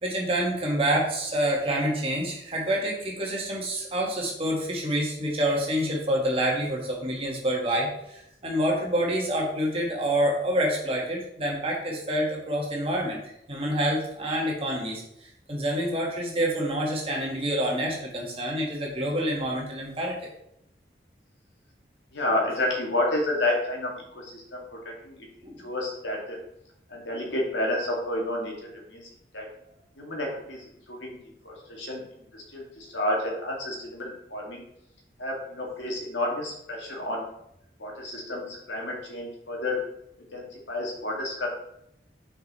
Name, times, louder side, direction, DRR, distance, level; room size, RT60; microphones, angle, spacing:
voice 1, 0.0-13.2 13.5-15.0 15.5-20.3 25.4-25.6, right 1 dB, 30° right, -2 dB, 1.6 m, -27 dB
voice 2, 22.1-25.3 25.6-26.4 26.9-29.5 30.0-31.2 31.4-34.6 35.2-37.3 37.8-39.8 40.3-41.5, left 1 dB, 90° left, -1 dB, 2.0 m, -30 dB
5.9 x 5.1 x 4.2 m, 0.77 s
head